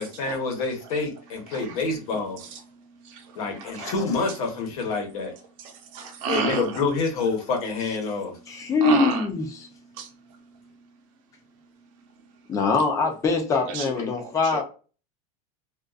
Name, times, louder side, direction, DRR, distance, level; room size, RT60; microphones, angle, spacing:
voice 1, 0.0-2.4 3.3-5.4 6.3-8.4 14.0-14.1, left 4 dB, 90° left, 1.0 m, -27 dB
voice 2, 2.4-3.9 5.6-6.7 8.3-9.3 9.6-10.9 13.7-13.9 14.2-14.6, right 6 dB, 65° right, 0.7 m, -33 dB
voice 3, 8.5-9.4 12.5-14.6, left 4 dB, 15° left, 0.5 m, -23 dB
2.4 x 2.4 x 2.3 m
supercardioid pair, 165°, 18 cm